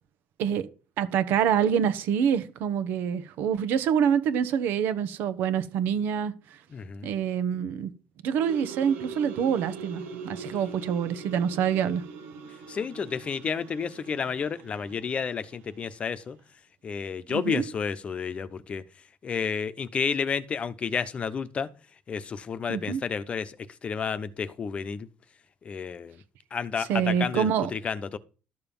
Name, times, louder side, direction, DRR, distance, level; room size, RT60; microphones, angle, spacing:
voice 1, 1.0-6.3 7.0-7.9 8.2-12.0 17.3-17.6 22.7-23.0 26.8-27.7, right 8 dB, 70° right, 1.4 m, -26 dB
voice 2, 6.7-7.1 12.7-16.4 16.8-18.8 19.2-21.7 22.1-23.6 23.8-25.1 25.6-26.2 26.5-28.2, left 6 dB, 35° left, 0.9 m, -31 dB
sound 1, 8.4-15.5, right 5 dB, 90° right, 2.3 m, -42 dB
12.5 x 6.9 x 5.5 m
cardioid pair, 115°, 4 cm